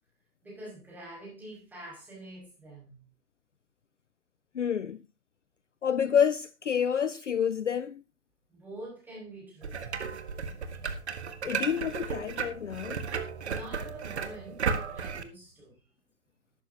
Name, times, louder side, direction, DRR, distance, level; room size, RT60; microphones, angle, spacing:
voice 1, 0.4-3.0 8.5-9.8 13.4-15.8, right 1 dB, 5° right, 6.1 m, -46 dB
voice 2, 4.5-5.0 5.8-8.0 11.4-13.0, left 8 dB, 50° left, 0.6 m, -28 dB
sound 1, 9.6-15.2, right 6 dB, 45° right, 1.5 m, -34 dB
14.0 x 12.0 x 2.9 m
figure-of-eight pair, 135°, 47 cm